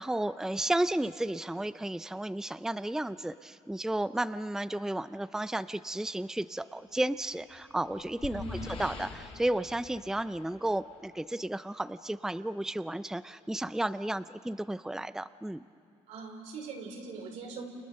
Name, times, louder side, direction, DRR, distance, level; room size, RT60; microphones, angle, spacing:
voice 1, 0.0-15.6, right 1 dB, 5° right, 13 dB, 0.6 m, -33 dB
sound 1, 7.4-11.1, left 4 dB, 55° left, 3.0 m, -44 dB
voice 2, 16.1-17.6, right 4 dB, 80° right, 1 dB, 4.7 m, -41 dB
30.0 x 29.5 x 6.6 m, 2.6 s
cardioid pair, 80°, 12 cm